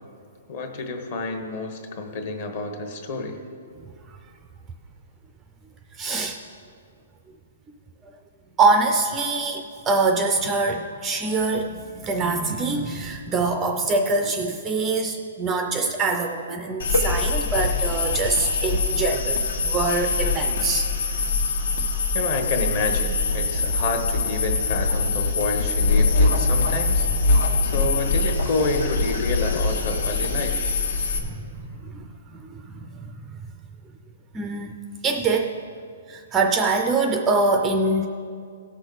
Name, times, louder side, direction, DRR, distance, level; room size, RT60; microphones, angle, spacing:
voice 1, 0.5-3.4 22.1-27.1 27.6-30.7, left 3 dB, 35° left, 4 dB, 1.1 m, -29 dB
voice 2, 6.0-6.4 8.6-20.9 31.2-33.1 34.3-34.7 35.0-35.5 36.1-38.1, right 3 dB, 10° right, 5 dB, 0.4 m, -24 dB
sound 1, 16.8-31.2, left 3 dB, 80° left, 1.4 m, -23 dB
17.5 x 6.1 x 4.0 m, 2.3 s
hypercardioid pair, 175°, 0 cm